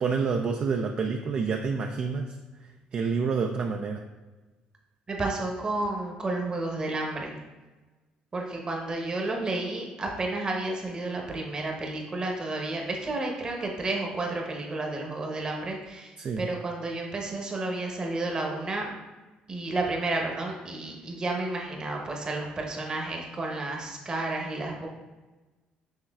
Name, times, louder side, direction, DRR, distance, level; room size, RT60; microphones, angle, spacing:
voice 1, 0.0-4.0 16.2-16.5, right 5 dB, 45° right, 3 dB, 0.3 m, -28 dB
voice 2, 5.1-7.3 8.3-18.9 19.5-24.9, right 2 dB, 30° right, 0 dB, 0.9 m, -31 dB
6.4 x 3.2 x 2.3 m, 1.2 s
cardioid pair, 95°, 3 cm